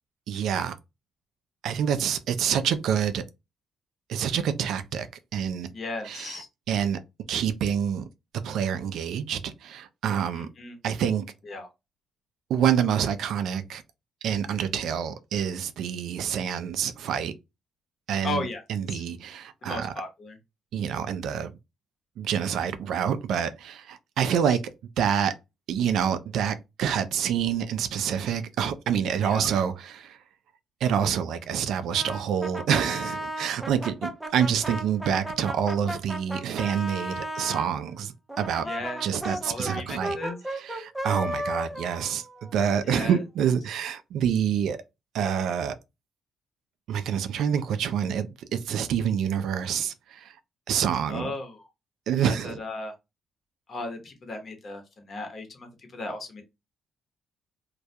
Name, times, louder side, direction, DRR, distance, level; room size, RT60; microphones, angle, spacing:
voice 1, 0.3-0.7 1.6-3.2 4.1-5.1 5.3-5.7 6.0-6.4 6.7-7.0 7.3-8.1 8.4-10.5 10.8-11.2 12.5-13.8 14.2-17.3 18.1-19.9 20.7-21.5 22.2-24.6 25.0-25.3 25.7-30.2 30.8-38.6 39.0-40.2 40.5-42.2 42.5-44.8 45.1-45.8 46.9-50.3 50.7-51.3 52.1-52.6, right 8 dB, 80° right, 0.3 m, -27 dB
voice 2, 5.7-6.5 10.3-10.7 11.4-11.7 18.2-18.6 18.9-19.0 19.6-20.4 24.2-24.6 29.2-29.5 38.6-40.4 42.8-43.2 51.1-51.6 52.2-52.9 53.7-56.4, left 2 dB, 50° left, 0.9 m, -36 dB
Brass instrument, 31.9-37.7 38.3-43.1, right 1 dB, 10° right, 0.5 m, -35 dB
2.3 x 2.1 x 2.7 m
cardioid pair, 90°, 0 cm